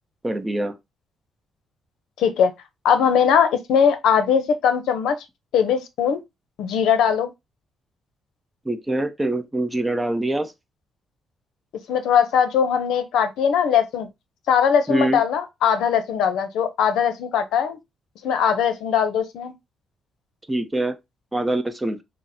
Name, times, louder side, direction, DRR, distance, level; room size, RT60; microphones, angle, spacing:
voice 1, 0.2-0.7 8.6-10.5 14.9-15.2 20.5-20.9 21.3-22.0, right 1 dB, 15° right, 0.6 m, -24 dB
voice 2, 2.2-2.5 2.8-5.2 5.5-6.2 6.6-7.3 11.9-14.1 14.5-17.8 18.2-19.5, left 7 dB, 80° left, 0.6 m, -20 dB
5.6 x 2.0 x 2.6 m
cardioid pair, 90°, 0 cm